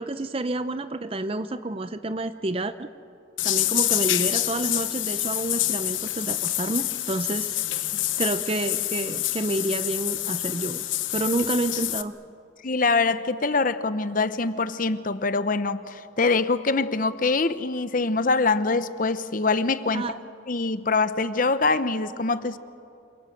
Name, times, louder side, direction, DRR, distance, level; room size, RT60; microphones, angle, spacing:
voice 1, 0.0-2.9 3.4-7.9 8.2-10.9 11.1-12.1 19.9-20.1, right 2 dB, 30° right, 11 dB, 0.5 m, -29 dB
sound 1, 3.4-12.0, left 14 dB, 80° left, 1.0 m, -27 dB
voice 2, 12.6-20.0 20.5-22.6, left 3 dB, 45° left, 13 dB, 0.8 m, -24 dB
27.5 x 25.0 x 7.9 m, 2.6 s
head